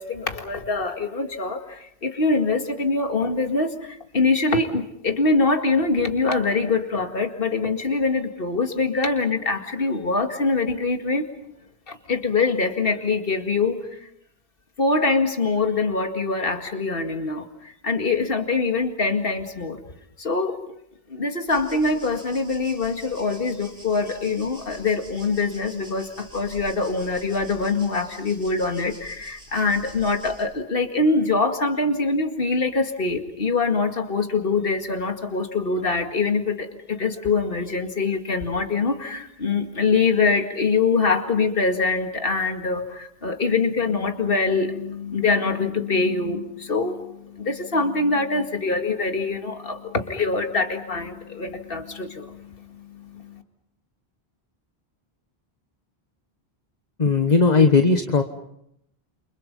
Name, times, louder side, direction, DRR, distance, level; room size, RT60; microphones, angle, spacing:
voice 1, 0.0-11.2 11.9-13.8 14.8-17.5 17.8-19.8 20.2-20.6 21.1-47.0 47.3-52.4 53.1-53.2, left 3 dB, 60° left, 5 dB, 2.3 m, -24 dB
sound 1, 21.5-30.4, right 1 dB, 80° right, 6.7 m, -46 dB
voice 2, 57.0-58.2, left 4 dB, 40° left, 6 dB, 1.4 m, -17 dB
29.0 x 28.5 x 5.5 m, 0.75 s
omnidirectional pair, 1.0 m